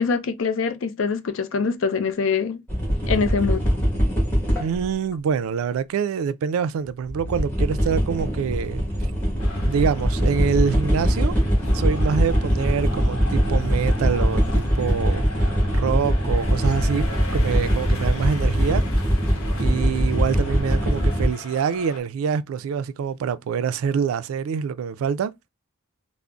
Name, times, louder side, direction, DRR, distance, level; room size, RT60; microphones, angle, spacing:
voice 1, 0.0-2.6 3.1-3.7, left 5 dB, 65° left, 0.4 m, -24 dB
sound 1, 2.7-4.9 6.8-21.3, equal, 10° left, 1.1 m, -22 dB
voice 2, 4.6-8.8 9.7-11.4 11.7-17.1 17.3-18.8 19.6-25.3, right 6 dB, 80° right, 0.3 m, -25 dB
sound 2, 9.4-22.0, left 2 dB, 90° left, 0.8 m, -39 dB
3.7 x 2.0 x 2.3 m
head